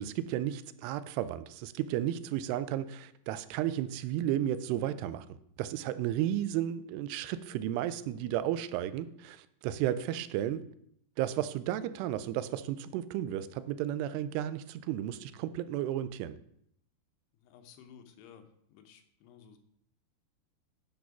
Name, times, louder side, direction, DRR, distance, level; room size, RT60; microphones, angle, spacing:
voice 1, 0.0-5.3 5.6-10.6 11.2-16.4, right 12 dB, 90° right, 14 dB, 2.6 m, -33 dB
voice 2, 17.4-19.6, left 7 dB, 85° left, 7 dB, 2.9 m, -55 dB
10.5 x 3.8 x 5.9 m, 0.71 s
omnidirectional pair, 4.6 m